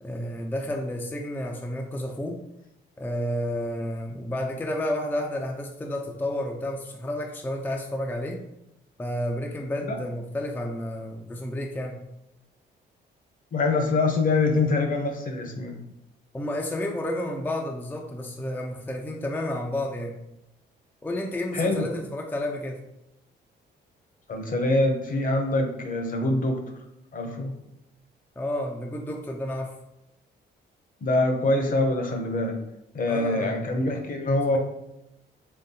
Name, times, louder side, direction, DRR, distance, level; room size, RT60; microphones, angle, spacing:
voice 1, 0.0-2.4 3.0-8.4 9.0-12.0 16.3-20.2 21.0-22.8 28.4-29.7 33.1-33.8, left 1 dB, 10° left, 1 dB, 0.4 m, -31 dB
voice 2, 13.5-15.8 21.5-21.9 24.3-26.6 27.1-27.5 31.0-32.6 32.9-34.6, left 2 dB, 45° left, 4 dB, 0.7 m, -24 dB
3.8 x 3.2 x 2.7 m, 0.85 s
cardioid pair, 90°, 20 cm